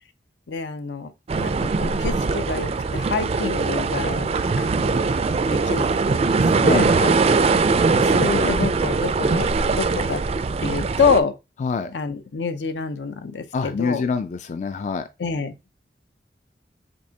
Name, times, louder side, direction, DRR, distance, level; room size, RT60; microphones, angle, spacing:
voice 1, 0.5-1.1 1.4-4.3 4.6-5.1 5.4-6.9 8.2-10.2 10.6-11.4 11.9-14.0 15.2-15.6, left 5 dB, 80° left, 0.6 m, -27 dB
sound 1, 1.3-11.2, right 4 dB, 35° right, 0.3 m, -21 dB
voice 2, 6.6-7.2 7.9-8.5 11.6-11.9 13.5-15.1, left 4 dB, 40° left, 0.3 m, -26 dB
5.2 x 3.5 x 2.8 m
head